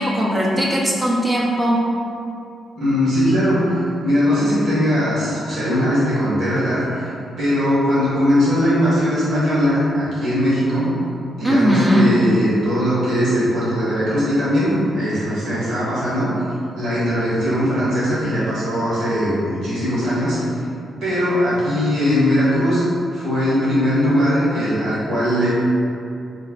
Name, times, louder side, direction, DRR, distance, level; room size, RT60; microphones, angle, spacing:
voice 1, 0.0-1.8 11.4-12.1, equal, 25° right, -5 dB, 0.5 m, -18 dB
voice 2, 2.7-7.1 7.4-10.9 11.3-16.3 16.7-20.4 21.0-22.8 23.1-25.5, equal, 75° right, -10 dB, 1.4 m, -19 dB
3.3 x 2.0 x 3.8 m, 2.6 s
cardioid pair, 65°, 0 cm